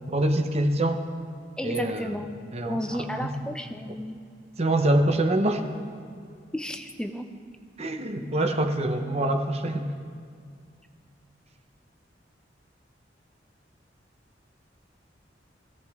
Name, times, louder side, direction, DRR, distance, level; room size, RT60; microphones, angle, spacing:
voice 1, 0.1-1.0 1.6-2.1 2.5-3.3 4.6-5.6 7.8-9.9, right 1 dB, 35° right, 6 dB, 0.9 m, -25 dB
voice 2, 1.6-2.3 2.6-4.2 6.5-7.3, equal, 5° left, 6 dB, 0.5 m, -32 dB
17.5 x 16.0 x 3.6 m, 2.2 s
head